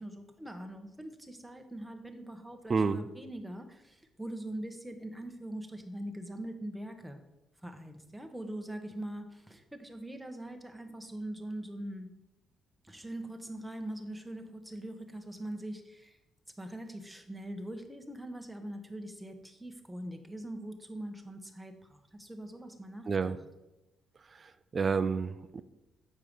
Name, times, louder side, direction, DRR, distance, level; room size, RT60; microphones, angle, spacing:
voice 1, 0.0-7.2 7.6-12.1 12.8-16.2 16.6-23.4, right 1 dB, 5° right, 5 dB, 1.0 m, -42 dB
voice 2, 2.7-3.0 23.1-23.4 24.7-25.6, right 5 dB, 40° right, 12 dB, 0.4 m, -29 dB
7.4 x 4.7 x 5.1 m, 0.98 s
cardioid pair, 90°, 0 cm